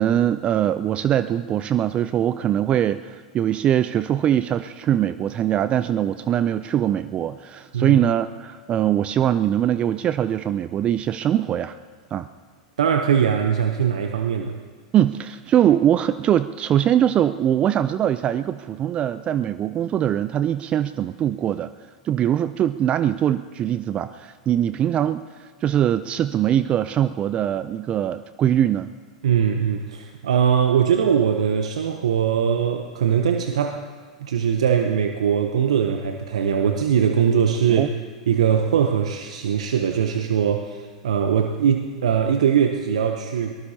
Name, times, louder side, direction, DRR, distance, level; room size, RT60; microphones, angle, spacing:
voice 1, 0.0-11.8 12.1-12.3 14.9-21.7 22.0-28.9 37.7-37.9, right 10 dB, 35° right, 14 dB, 0.4 m, -22 dB
voice 2, 12.8-14.5 29.2-33.8 34.2-37.9 38.3-43.6, right 8 dB, 75° right, 5 dB, 0.8 m, -21 dB
22.5 x 19.0 x 2.9 m, 1.5 s
hypercardioid pair, 100°, 3 cm